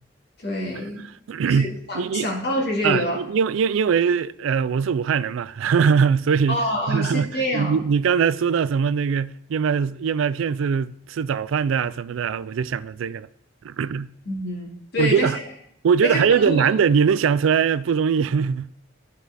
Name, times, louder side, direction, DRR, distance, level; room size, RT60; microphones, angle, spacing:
voice 1, 0.4-1.1 1.4-3.2 6.5-7.8 14.3-15.4 16.0-16.7, left 1 dB, 55° left, 2.2 m, -26 dB
voice 2, 1.3-2.3 2.8-6.6 6.9-13.3 13.6-14.1 15.0-15.4 15.8-18.7, right 6 dB, 80° right, 0.3 m, -21 dB
12.5 x 4.6 x 4.0 m
head